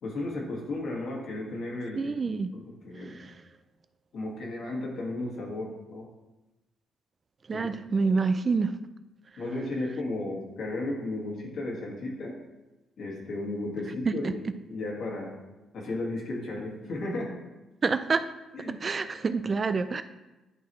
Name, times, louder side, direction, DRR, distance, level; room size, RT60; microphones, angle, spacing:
voice 1, 0.0-2.1 2.5-3.3 4.1-6.1 7.5-7.7 9.4-12.4 13.0-15.3 15.7-17.3 18.5-18.8, left 2 dB, 65° left, -1 dB, 1.9 m, -34 dB
voice 2, 2.0-2.5 7.5-8.7 14.2-14.3 17.8-18.3 18.8-20.0, right 4 dB, 35° right, 11 dB, 0.3 m, -27 dB
11.0 x 3.9 x 3.1 m, 1.1 s
cardioid pair, 90°, 0 cm